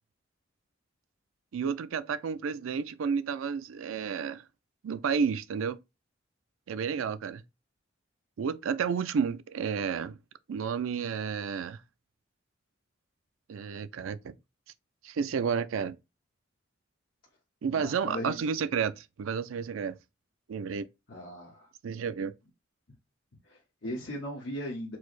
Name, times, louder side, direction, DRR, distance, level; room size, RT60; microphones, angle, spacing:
voice 1, 1.5-4.4 4.8-5.8 6.7-7.4 8.4-10.2 10.5-11.8 13.5-14.3 15.0-16.0 17.6-19.9 20.5-20.9 21.8-22.3, right 6 dB, 85° right, 0.4 m, -31 dB
voice 2, 17.8-18.4 21.1-21.7 23.5-25.0, equal, 75° left, 1.1 m, -38 dB
4.5 x 2.0 x 4.5 m
head